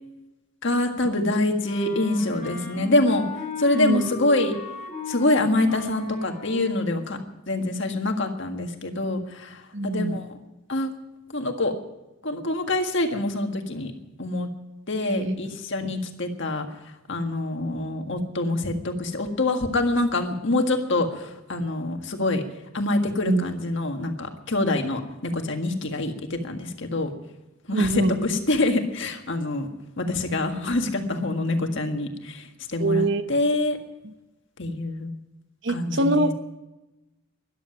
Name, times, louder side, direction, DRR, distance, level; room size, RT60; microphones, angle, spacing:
voice 1, 0.6-3.3 3.6-4.5 5.1-7.2 7.5-10.3 10.7-10.9 11.3-11.7 12.2-13.9 14.2-14.5 14.9-16.7 17.1-22.4 22.7-27.1 27.7-29.7 30.0-33.8 34.6-35.1 35.7-36.3, left 2 dB, 55° left, 5 dB, 1.8 m, -25 dB
Wind instrument woodwind instrument, 1.6-6.9, left 3 dB, 35° left, 3.7 m, -37 dB
voice 2, 3.7-4.1 9.7-10.2 15.1-15.3 23.3-23.4 27.7-28.1 32.8-33.2 35.6-36.3, right 2 dB, 55° right, 10 dB, 1.0 m, -23 dB
13.5 x 11.5 x 9.1 m, 1.0 s
head